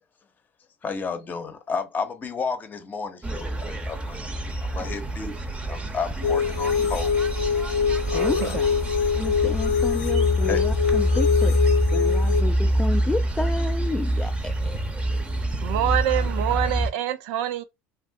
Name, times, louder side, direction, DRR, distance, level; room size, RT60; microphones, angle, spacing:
voice 1, 0.8-7.1 8.1-8.5 10.5-10.6, left 5 dB, 30° left, 0.7 m, -32 dB
sound 1, 3.2-16.9, equal, 20° right, 0.7 m, -26 dB
sound 2, 6.2-12.4, left 6 dB, 80° left, 0.5 m, -24 dB
voice 2, 8.1-8.7 9.1-11.6 11.9-15.0, left 3 dB, 10° left, 0.3 m, -31 dB
voice 3, 15.6-17.6, right 11 dB, 75° right, 0.4 m, -25 dB
2.6 x 2.4 x 3.3 m
supercardioid pair, 95°, 6 cm